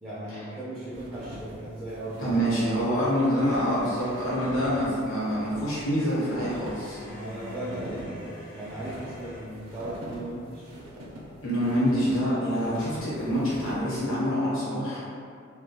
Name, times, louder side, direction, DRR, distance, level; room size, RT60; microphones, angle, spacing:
voice 1, 0.0-2.6 7.1-10.7, right 1 dB, 10° right, -10 dB, 0.3 m, -37 dB
sound 1, 0.9-14.2, equal, 80° right, 0.5 m, -44 dB
voice 2, 2.2-7.0 11.4-15.0, equal, 85° left, -9 dB, 0.9 m, -26 dB
sound 2, 3.4-5.0 6.1-9.6 10.5-13.5, left 1 dB, 45° left, 0.5 m, -47 dB
2.2 x 2.1 x 2.8 m, 2.3 s
head